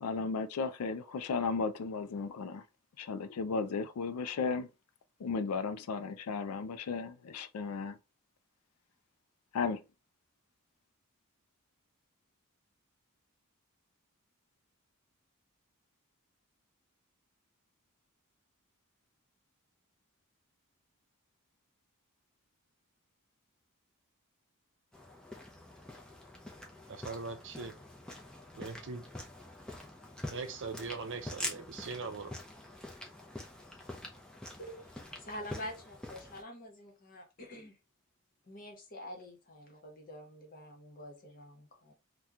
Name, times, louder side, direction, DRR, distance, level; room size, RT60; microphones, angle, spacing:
voice 1, 0.0-2.6 3.0-4.7 5.2-8.0 9.5-9.8, left 4 dB, 80° left, 0.4 m, -35 dB
sound 1, 24.9-36.4, left 1 dB, 5° left, 0.5 m, -45 dB
voice 2, 26.9-27.7 28.5-29.0 30.3-32.3, right 4 dB, 55° right, 0.5 m, -41 dB
voice 3, 34.6-37.8 38.5-41.9, left 1 dB, 40° left, 0.9 m, -47 dB
2.8 x 2.2 x 3.5 m
head